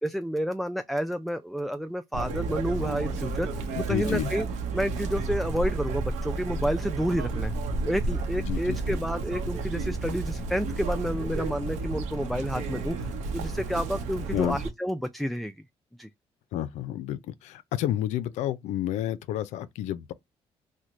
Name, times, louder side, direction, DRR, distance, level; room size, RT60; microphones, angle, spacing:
voice 1, 0.0-4.5 4.7-7.5 7.8-15.5 16.0-16.1, equal, ahead, 0.3 m, -30 dB
Chirp tweet, 2.1-14.7, right 3 dB, 90° right, 0.8 m, -31 dB
voice 2, 3.9-4.3 8.4-8.8 14.3-14.6 16.5-20.1, left 12 dB, 80° left, 0.4 m, -30 dB
3.0 x 2.1 x 3.6 m
supercardioid pair, 70°, 12 cm